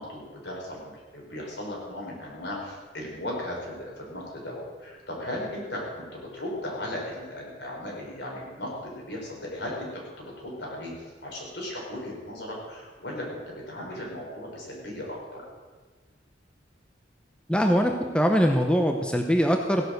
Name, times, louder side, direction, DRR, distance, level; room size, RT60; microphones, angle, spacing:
voice 1, 0.0-15.4, left 1 dB, 65° left, -2 dB, 5.2 m, -36 dB
voice 2, 17.5-19.9, equal, 5° left, 3 dB, 0.8 m, -22 dB
16.5 x 11.0 x 6.6 m, 1.4 s
head